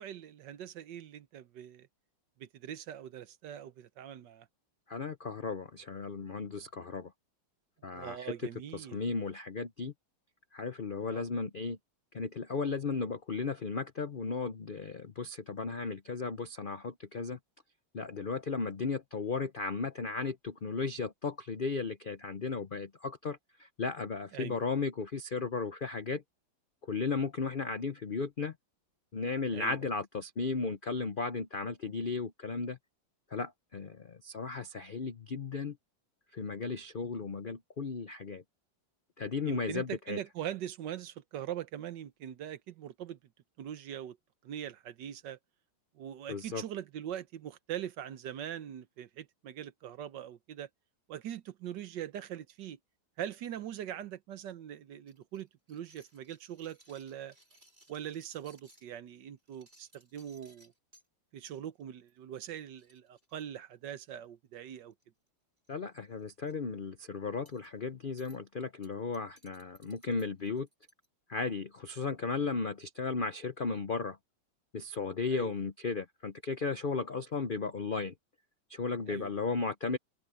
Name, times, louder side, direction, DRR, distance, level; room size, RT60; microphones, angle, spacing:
voice 1, 0.0-1.9 2.4-4.5 7.9-9.0 11.0-11.3 24.3-24.6 29.5-29.8 39.5-43.2 43.6-44.2 44.4-45.4 45.9-50.7 51.1-52.8 53.2-57.3 57.9-60.7 61.3-64.9 75.3-75.5 79.1-79.3, right 10 dB, 70° right, 1.5 m, -42 dB
voice 2, 4.9-7.1 7.8-8.3 8.7-9.9 10.5-11.8 12.1-17.4 17.9-26.2 26.8-28.5 29.1-32.8 33.3-35.8 36.3-38.4 39.2-40.2 46.3-46.6 65.7-70.7 71.3-74.2 74.7-78.1 78.7-80.0, left 4 dB, 60° left, 0.5 m, -35 dB
sound 1, 55.1-58.9 59.4-61.1 61.5-61.8 62.1-62.2 62.5-62.6 62.8-64.1 64.9-65.3 65.6-65.7 66.1-66.5 67.5-67.7 68.2-68.4 68.8-71.1, right 1 dB, 25° right, 5.5 m, -63 dB
omnidirectional pair, 2.1 m